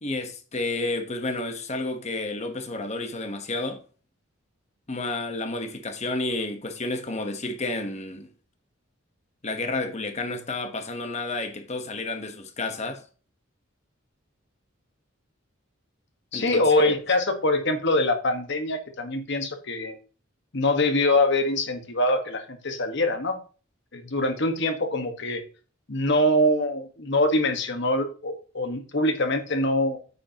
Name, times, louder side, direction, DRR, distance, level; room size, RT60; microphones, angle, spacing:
voice 1, 0.0-3.8 4.9-8.3 9.4-13.0 16.3-16.9, left 2 dB, 35° left, 1.2 m, -31 dB
voice 2, 16.3-19.9 20.5-23.4 23.9-25.4 25.9-30.0, left 1 dB, 60° left, 1.5 m, -24 dB
9.3 x 8.1 x 3.0 m
head